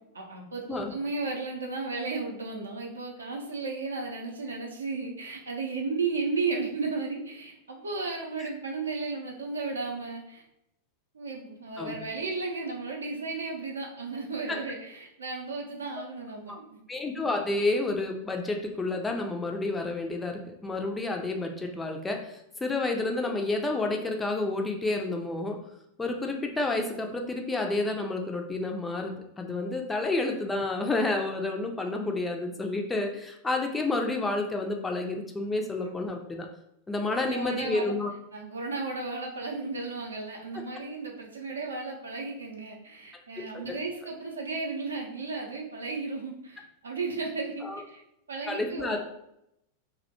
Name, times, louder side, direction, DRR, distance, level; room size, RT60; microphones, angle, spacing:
voice 1, 0.1-10.4 11.1-16.8 35.8-35.9 37.1-37.9 38.3-47.5 47.9-48.0 48.3-49.0, right 3 dB, 70° right, 1 dB, 0.5 m, -34 dB
voice 2, 16.9-25.6 26.0-36.5 36.9-38.1 43.7-43.8 47.6-47.8 48.5-49.0, left 2 dB, 10° left, 3 dB, 0.3 m, -30 dB
2.3 x 2.1 x 2.8 m, 0.80 s
figure-of-eight pair, 90°, 0 cm